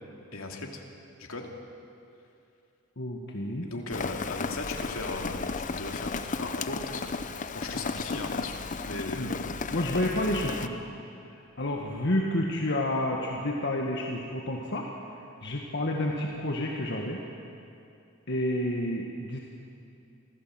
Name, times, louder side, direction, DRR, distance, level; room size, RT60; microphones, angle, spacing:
voice 1, 0.3-0.8 1.2-1.5 3.7-7.2 7.5-8.6 8.8-9.6, left 2 dB, 80° left, 2 dB, 2.6 m, -37 dB
voice 2, 3.0-3.7 9.2-9.3 9.7-10.9 11.3-14.9 15.4-17.2 18.3-19.4, left 1 dB, 55° left, 0 dB, 1.7 m, -30 dB
Rain, 3.9-10.7, left 4 dB, 35° left, 0.7 m, -34 dB
26.0 x 16.0 x 7.8 m, 2.6 s
head